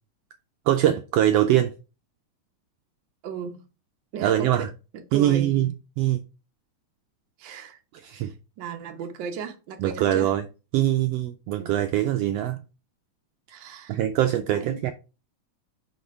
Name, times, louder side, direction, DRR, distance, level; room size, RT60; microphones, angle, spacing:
voice 1, 0.7-1.7 4.2-4.7 5.1-5.7 6.0-6.2 7.9-8.3 9.8-10.5 10.7-12.6 13.9-14.9, right 12 dB, 80° right, 1.4 m, -23 dB
voice 2, 3.2-3.6 4.1-4.7 5.1-5.5 7.4-7.8 8.1-8.3 8.6-10.3 11.5-11.8 13.5-14.0 14.5-14.8, right 7 dB, 60° right, 1.2 m, -36 dB
5.6 x 4.4 x 4.6 m
omnidirectional pair, 3.4 m